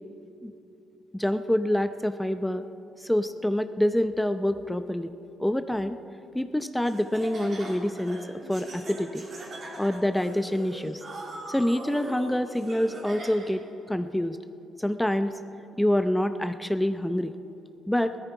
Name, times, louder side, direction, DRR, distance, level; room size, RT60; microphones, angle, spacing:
voice 1, 1.1-2.7 3.0-5.1 5.4-6.0 6.3-9.2 9.8-11.0 11.5-14.4 14.8-15.4 15.8-17.3 17.9-18.2, left 1 dB, 5° left, 10 dB, 0.6 m, -26 dB
Laughter, 6.8-13.7, right 1 dB, 50° right, 3.1 m, -41 dB
16.5 x 13.5 x 4.7 m, 2.8 s
supercardioid pair, 60°, 0 cm